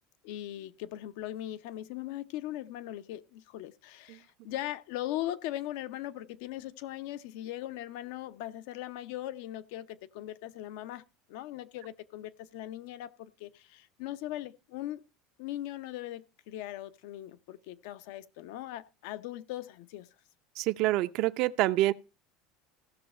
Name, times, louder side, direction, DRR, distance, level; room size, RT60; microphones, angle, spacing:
voice 1, 0.2-11.0 11.3-15.0 15.4-20.1, left 14 dB, 75° left, 0.7 m, -39 dB
voice 2, 20.6-21.9, right 16 dB, 60° right, 0.6 m, -27 dB
15.5 x 6.3 x 4.3 m
supercardioid pair, 120°, 0 cm